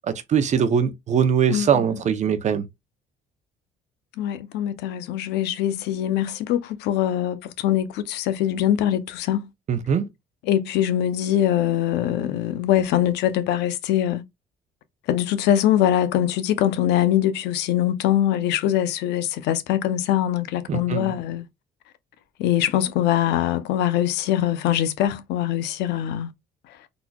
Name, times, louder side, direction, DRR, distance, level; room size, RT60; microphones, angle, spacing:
voice 1, 0.3-2.7 9.7-10.1 20.7-21.1, right 7 dB, 45° right, 0.7 m, -21 dB
voice 2, 1.5-1.8 4.2-9.5 10.5-14.2 15.1-21.4 22.4-26.3, left 11 dB, 85° left, 0.6 m, -23 dB
3.9 x 3.0 x 2.3 m
cardioid pair, 110°, 17 cm